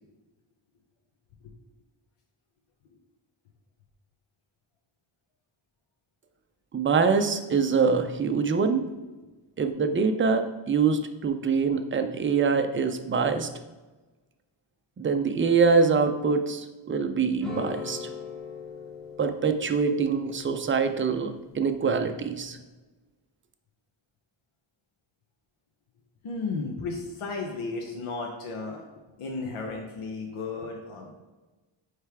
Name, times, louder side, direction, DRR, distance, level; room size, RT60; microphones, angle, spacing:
voice 1, 6.7-8.8 9.6-13.5 15.0-18.1 19.2-22.6, right 5 dB, 25° right, 7 dB, 0.3 m, -24 dB
sound 1, 17.4-22.6, left 5 dB, ahead, 1.0 m, -41 dB
voice 2, 26.2-28.8 29.2-31.1, left 3 dB, 75° left, 1 dB, 0.9 m, -34 dB
9.1 x 3.3 x 3.4 m, 1.2 s
wide cardioid pair, 165°, 50 cm